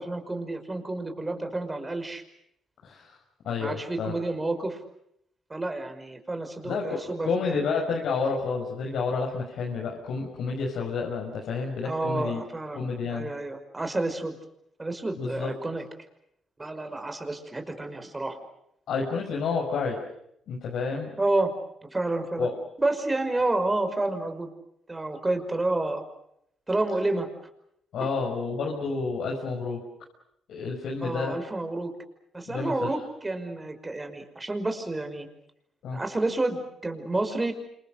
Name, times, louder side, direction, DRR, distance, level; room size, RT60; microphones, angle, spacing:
voice 1, 0.0-2.2 3.6-4.8 5.5-7.6 11.8-14.4 14.8-15.9 16.6-18.4 21.2-21.5 21.9-22.5 22.8-24.5 24.9-26.0 26.7-27.3 31.0-32.0 32.3-35.3 35.9-37.5, right 2 dB, 20° right, 7 dB, 5.6 m, -29 dB
voice 2, 2.8-3.2 3.4-4.1 6.6-12.4 12.8-13.3 15.2-15.5 18.9-20.0 20.5-21.1 22.4-22.5 27.9-29.8 30.5-31.4 32.5-32.9 35.8-36.0, left 4 dB, 75° left, -1 dB, 6.0 m, -30 dB
29.5 x 27.0 x 6.7 m, 0.75 s
cardioid pair, 90°, 0 cm